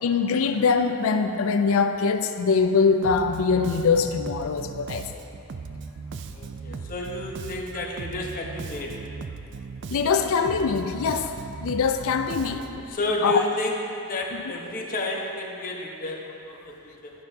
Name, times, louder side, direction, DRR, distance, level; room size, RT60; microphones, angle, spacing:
voice 1, 0.0-5.1 9.9-11.3 11.6-12.9 13.2-13.4, left 5 dB, 65° left, 8 dB, 0.4 m, -23 dB
Bass guitar, 3.0-12.9, right 4 dB, 55° right, 0.4 m, -38 dB
voice 2, 6.3-8.9 12.9-13.7 14.0-17.1, left 2 dB, 40° left, -1 dB, 1.0 m, -31 dB
11.5 x 10.0 x 2.8 m, 2.8 s
head